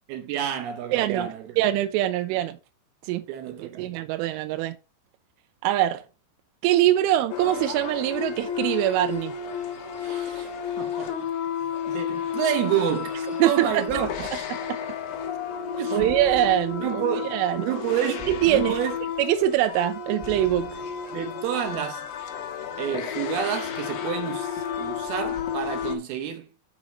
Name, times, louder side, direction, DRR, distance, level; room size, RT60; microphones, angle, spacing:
voice 1, 0.1-1.4 3.3-3.9 10.0-10.5 10.8-11.3 11.6-14.5 15.8-16.1 16.8-17.3 17.6-19.0 21.1-22.1 22.8-26.5, right 10 dB, 70° right, 2.5 m, -29 dB
voice 2, 0.9-1.3 1.6-2.6 3.0-3.2 3.8-4.7 5.6-6.0 6.6-9.3 13.4-13.8 15.8-17.7 18.3-18.7 19.2-20.7, right 14 dB, 85° right, 3.2 m, -23 dB
sound 1, 7.3-26.0, left 8 dB, 80° left, 1.8 m, -32 dB
sound 2, 13.9-14.8 16.0-17.0 18.2-19.2 20.2-21.1, left 3 dB, ahead, 1.1 m, -44 dB
6.4 x 6.0 x 5.1 m
omnidirectional pair, 5.6 m